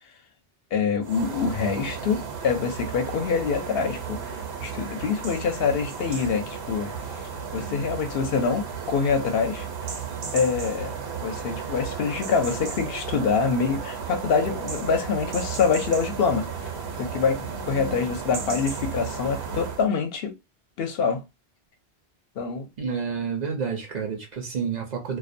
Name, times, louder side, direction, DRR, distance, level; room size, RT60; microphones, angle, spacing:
voice 1, 0.7-4.2 4.6-6.9 7.5-9.7 10.3-11.0 11.2-16.5 17.0-17.4 17.7-20.3 20.8-21.2 22.4-22.7, left 5 dB, 70° left, 0.8 m, -25 dB
sound 1, 1.0-19.9, right 6 dB, 75° right, 1.0 m, -34 dB
voice 2, 22.8-25.2, right 6 dB, 50° right, 0.6 m, -29 dB
2.3 x 2.1 x 2.5 m
omnidirectional pair, 1.1 m